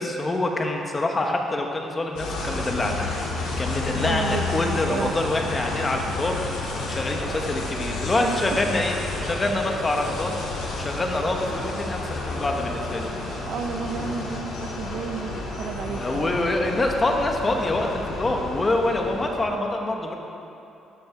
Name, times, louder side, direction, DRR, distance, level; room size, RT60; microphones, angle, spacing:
voice 1, 0.0-3.1 3.6-6.4 6.8-9.0 9.2-10.4 10.7-13.0 16.0-20.2, left 2 dB, 20° left, 2 dB, 1.1 m, -25 dB
sound 1, 2.1-19.4, left 3 dB, 75° left, 3.3 m, -31 dB
voice 2, 4.0-5.3 6.2-6.4 8.2-8.4 12.3-12.4 13.5-16.5, right 6 dB, 60° right, 7 dB, 0.7 m, -32 dB
12.0 x 11.0 x 5.0 m, 2.8 s
cardioid pair, 160°, 0 cm